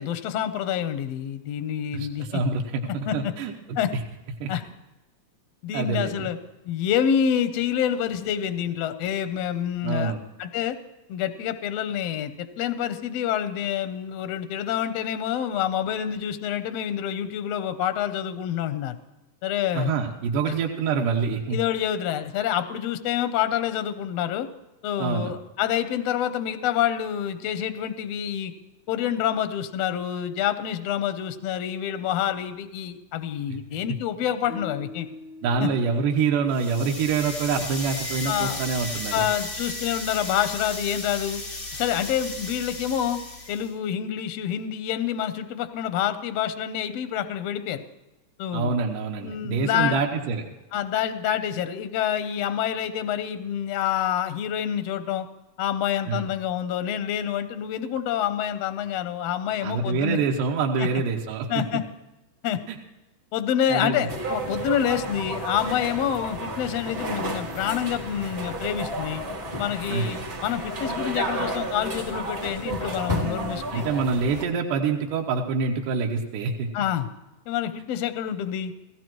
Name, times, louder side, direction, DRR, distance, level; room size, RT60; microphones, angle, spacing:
voice 1, 0.0-2.4 2.9-3.3 3.8-3.9 4.5-4.6 5.6-6.4 6.6-10.1 10.4-10.8 11.1-19.0 19.4-19.9 20.4-20.5 21.5-24.5 24.8-28.5 28.9-35.1 35.6-35.7 38.2-38.6 39.1-41.4 41.7-43.2 43.5-47.8 48.4-48.7 49.2-50.0 50.7-55.3 55.6-60.2 60.8-60.9 61.5-61.8 62.4-62.6 63.3-69.2 69.6-73.8 76.7-77.1 77.5-78.7, left 10 dB, 75° left, 10 dB, 1.5 m, -27 dB
voice 2, 1.9-3.5 3.9-4.0 4.4-4.5 5.7-6.3 9.8-10.2 19.7-21.6 25.0-25.3 35.4-39.3 48.5-50.4 56.1-56.3 59.6-61.6 62.7-62.8 63.7-64.1 69.9-70.2 73.1-76.7, right 5 dB, 80° right, 1 dB, 2.6 m, -26 dB
sound 1, 34.5-37.7, left 1 dB, 60° right, 1.6 m, -45 dB
sound 2, 36.5-43.7, left 2 dB, 30° left, 1.0 m, -35 dB
sound 3, 64.1-74.4, right 1 dB, 25° right, 1.5 m, -32 dB
17.5 x 16.0 x 3.1 m, 1.0 s
omnidirectional pair, 3.7 m